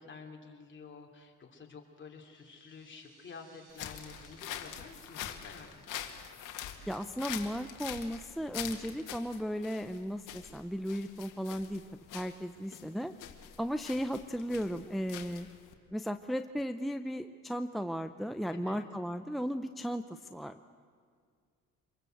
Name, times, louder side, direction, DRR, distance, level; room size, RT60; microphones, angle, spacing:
voice 1, 0.0-6.1 12.6-12.8 18.5-18.8, left 5 dB, 40° left, 1 dB, 3.3 m, -50 dB
sound 1, 1.9-8.2, right 3 dB, 85° right, 5.7 m, -66 dB
sound 2, 3.7-15.7, left 10 dB, 85° left, 1.9 m, -44 dB
voice 2, 6.9-11.8 12.1-13.1 13.6-15.5 15.9-20.6, equal, ahead, 8 dB, 0.6 m, -35 dB
25.0 x 22.5 x 8.0 m, 2.1 s
cardioid pair, 110°, 31 cm